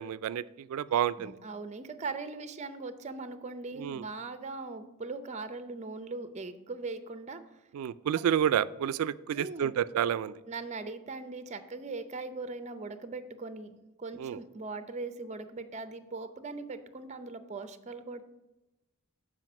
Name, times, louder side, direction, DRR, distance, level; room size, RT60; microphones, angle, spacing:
voice 1, 0.0-1.3 3.8-4.0 7.7-10.3 14.2-14.4, right 9 dB, 80° right, 16 dB, 0.3 m, -29 dB
voice 2, 0.9-7.4 9.3-9.7 10.5-18.2, right 3 dB, 30° right, 10 dB, 0.6 m, -40 dB
7.7 x 4.9 x 5.9 m, 1.0 s
head